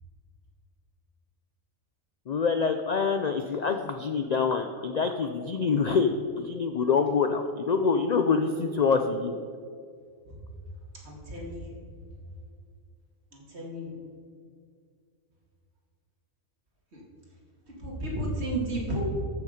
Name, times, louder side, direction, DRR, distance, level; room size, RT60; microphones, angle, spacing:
voice 1, 2.3-6.1 6.4-9.3, left 5 dB, 55° left, 6 dB, 0.4 m, -26 dB
voice 2, 11.0-11.6 13.3-13.9 16.9-17.0 17.8-19.0, right 1 dB, 60° right, -2 dB, 2.5 m, -32 dB
13.5 x 6.2 x 5.1 m, 2.2 s
omnidirectional pair, 1.2 m